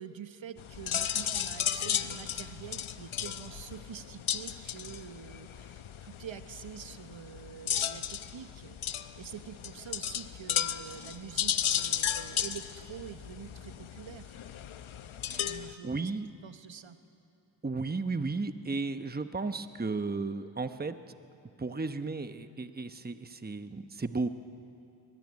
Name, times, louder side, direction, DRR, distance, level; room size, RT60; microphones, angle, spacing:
voice 1, 0.0-8.8 9.2-14.3 15.4-16.1 16.4-17.0, right 8 dB, 70° right, 10 dB, 1.2 m, -46 dB
sound 1, 0.6-15.7, left 9 dB, 90° left, 0.9 m, -35 dB
voice 2, 15.3-16.3 17.6-21.0 21.6-24.3, right 3 dB, 20° right, 9 dB, 1.0 m, -34 dB
23.5 x 21.0 x 9.7 m, 2.7 s
cardioid pair, 60°, 47 cm